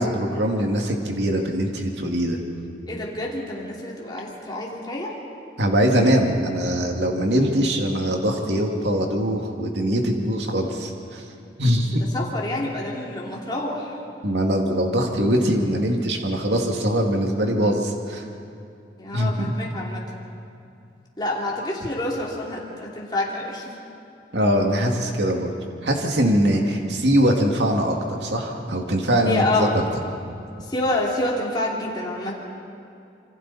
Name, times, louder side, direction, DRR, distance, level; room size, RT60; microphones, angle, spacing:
voice 1, 0.0-2.4 5.6-11.2 11.6-12.0 14.2-18.2 19.1-19.5 24.3-25.5 25.8-29.8, equal, 75° right, 2 dB, 2.3 m, -22 dB
voice 2, 2.9-5.2 11.9-13.9 19.0-20.0 21.2-23.6 29.2-29.8 30.7-32.3, left 1 dB, 25° left, -4 dB, 3.0 m, -27 dB
27.5 x 25.0 x 4.2 m, 2.5 s
head